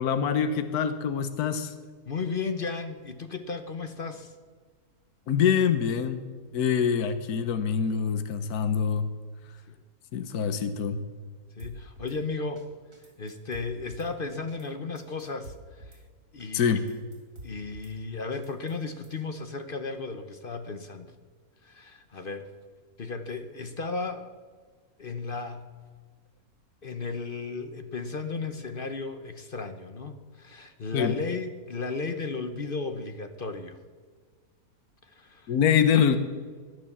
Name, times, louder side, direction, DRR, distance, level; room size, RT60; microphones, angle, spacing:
voice 1, 0.0-1.7 5.3-6.2 6.5-9.1 10.1-11.0 16.5-16.8 30.9-31.1 35.5-36.2, left 7 dB, 75° left, 10 dB, 1.4 m, -25 dB
voice 2, 2.1-4.3 9.7-9.8 11.5-12.7 13.2-16.0 16.3-17.0 17.4-21.1 21.6-22.5 23.0-24.3 25.0-25.7 26.8-33.8 35.0-35.6, left 4 dB, 40° left, 8 dB, 1.0 m, -35 dB
Drum kit / Snare drum, 11.6-12.2 12.6-12.7 12.9-14.1 14.5-14.7 15.0-16.0 16.4-16.5 16.8-17.9 18.3-19.2, right 1 dB, 80° right, 3.3 m, -48 dB
18.0 x 11.5 x 7.1 m, 1.5 s
omnidirectional pair, 1.6 m